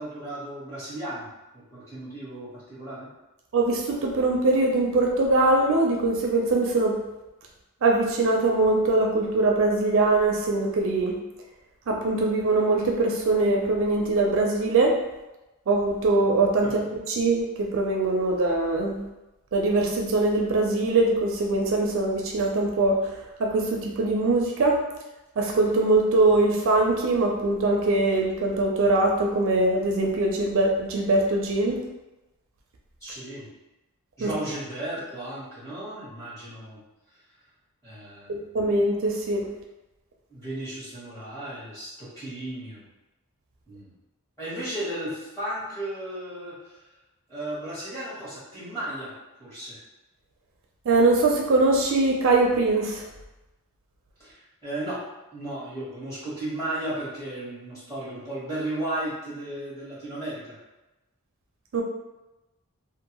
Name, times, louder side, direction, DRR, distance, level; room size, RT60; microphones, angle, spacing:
voice 1, 0.0-3.1 33.0-33.5 34.2-36.8 37.8-38.4 40.3-42.8 43.7-43.9 44.4-46.8 47.3-49.8 54.2-55.0 55.3-60.6, right 1 dB, 15° left, -10 dB, 1.3 m, -35 dB
voice 2, 3.5-7.0 7.8-11.1 11.9-15.0 15.7-16.7 17.1-19.0 19.5-24.8 25.4-31.8 34.2-34.3 38.3-39.4 50.9-53.0 61.7-61.8, right 2 dB, 60° right, 0 dB, 0.4 m, -22 dB
2.6 x 2.5 x 2.8 m, 1.0 s
head